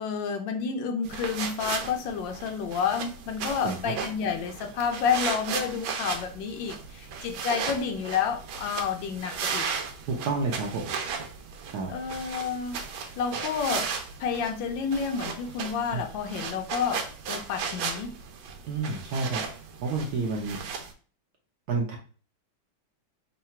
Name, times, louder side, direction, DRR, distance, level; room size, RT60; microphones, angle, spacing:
voice 1, 0.0-9.7 11.9-12.8 13.2-13.9 14.2-18.2, left 6 dB, 75° left, 5 dB, 1.3 m, -30 dB
sound 1, 1.0-20.9, right 6 dB, 80° right, 1.4 m, -36 dB
voice 2, 3.6-3.9 10.1-10.9 11.7-11.9 13.0-13.1 15.9-16.0 18.7-19.4 19.8-20.6 21.7-22.0, right 4 dB, 65° right, 0 dB, 1.1 m, -29 dB
3.8 x 2.3 x 4.2 m, 0.39 s
omnidirectional pair, 2.2 m